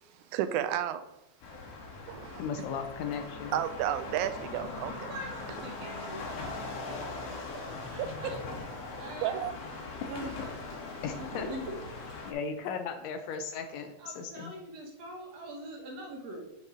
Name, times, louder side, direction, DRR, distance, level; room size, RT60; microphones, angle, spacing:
voice 1, 0.1-1.1 2.1-2.5 3.5-5.1 8.0-8.4 9.2-9.5, right 11 dB, 85° right, 2.0 m, -32 dB
sound 1, 1.4-12.3, left 3 dB, 60° left, 2.2 m, -40 dB
voice 2, 2.4-3.5 11.0-11.5 12.2-14.5, left 6 dB, 75° left, 1.7 m, -36 dB
voice 3, 4.8-6.2 7.5-8.4 8.9-9.3 10.1-10.3 11.2-11.7 14.0-16.5, right 1 dB, 65° right, 2.4 m, -42 dB
6.4 x 5.4 x 4.9 m
omnidirectional pair, 3.4 m